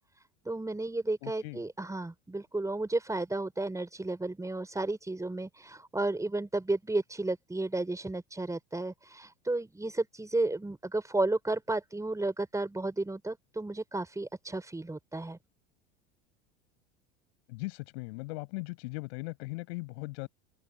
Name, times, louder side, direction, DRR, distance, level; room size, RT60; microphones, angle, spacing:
voice 1, 0.4-15.4, right 2 dB, 10° right, 5.9 m, -33 dB
voice 2, 1.2-1.6 17.5-20.3, left 25 dB, 70° left, 5.9 m, -39 dB
hypercardioid pair, 90°, 34 cm